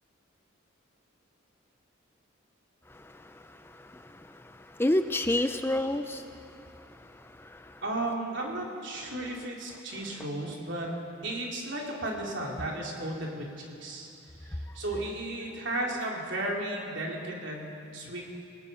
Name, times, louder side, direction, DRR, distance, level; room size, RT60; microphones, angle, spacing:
voice 1, 2.9-6.5 6.9-8.1 9.0-9.2, left 1 dB, 10° left, 8 dB, 0.5 m, -32 dB
voice 2, 7.8-10.9 11.2-14.1 14.3-18.2, right 1 dB, 60° right, -1 dB, 3.6 m, -34 dB
28.0 x 18.0 x 5.6 m, 2.6 s
head